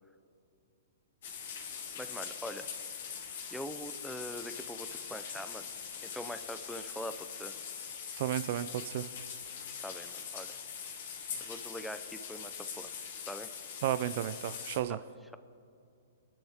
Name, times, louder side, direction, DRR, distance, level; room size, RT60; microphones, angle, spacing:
sound 1, 1.2-14.8, left 7 dB, 55° left, 2.4 m, -42 dB
voice 1, 2.0-2.7 3.5-5.7 6.0-7.5 9.8-10.5 11.4-13.5 14.9-15.0, equal, ahead, 10 dB, 0.6 m, -43 dB
voice 2, 8.2-9.1 13.8-15.0, right 12 dB, 50° right, 13 dB, 0.5 m, -33 dB
25.0 x 11.5 x 3.6 m, 2.6 s
hypercardioid pair, 155°, 0 cm